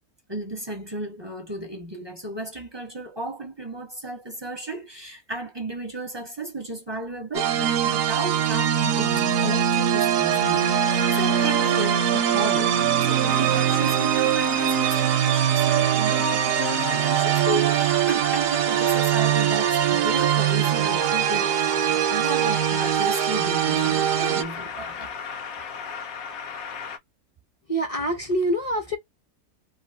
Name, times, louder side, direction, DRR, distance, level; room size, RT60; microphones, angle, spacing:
voice 1, 0.3-12.7 13.0-25.1, right 1 dB, 25° right, 0.5 m, -34 dB
sound 1, 7.3-24.4, right 10 dB, 70° right, 0.9 m, -22 dB
sound 2, 10.3-27.0, left 6 dB, 70° left, 1.1 m, -36 dB
voice 2, 27.7-29.0, right 1 dB, 30° left, 0.6 m, -25 dB
3.0 x 2.5 x 2.7 m
omnidirectional pair, 1.7 m